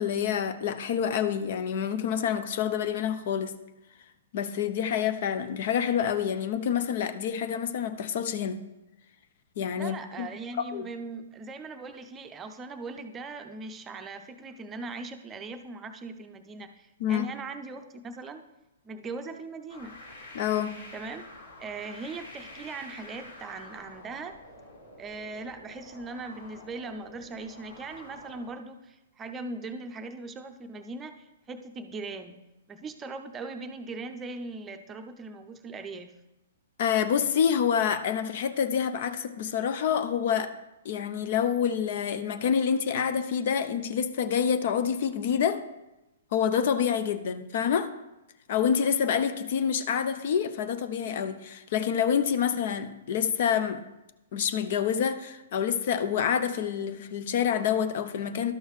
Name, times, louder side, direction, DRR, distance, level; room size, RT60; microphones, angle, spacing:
voice 1, 0.0-3.6 4.3-8.6 9.6-10.3 10.7-10.9 17.0-17.3 20.3-20.8 36.8-40.5 40.8-45.6 46.3-47.9 48.5-53.8 54.3-58.5, left 8 dB, 50° left, 11 dB, 0.5 m, -27 dB
voice 2, 9.8-18.4 18.8-19.9 20.9-21.2 21.6-24.4 25.0-32.4 32.7-36.1, right 3 dB, 20° right, 7 dB, 0.6 m, -40 dB
sound 1, 19.7-28.5, left 1 dB, 70° left, 2.1 m, -48 dB
12.0 x 6.3 x 3.2 m, 0.97 s
figure-of-eight pair, 115°, 0 cm